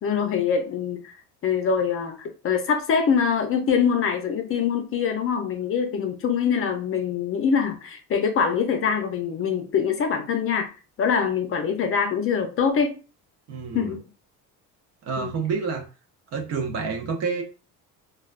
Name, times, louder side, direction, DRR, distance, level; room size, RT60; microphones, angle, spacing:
voice 1, 0.0-1.0 1.4-10.7 11.0-13.0 13.7-14.0 15.2-15.3, left 6 dB, 40° left, 0.6 m, -24 dB
voice 2, 13.5-14.0 15.0-15.9 16.3-17.4, right 5 dB, 50° right, 0.7 m, -28 dB
3.3 x 2.3 x 2.4 m
cardioid pair, 130°, 34 cm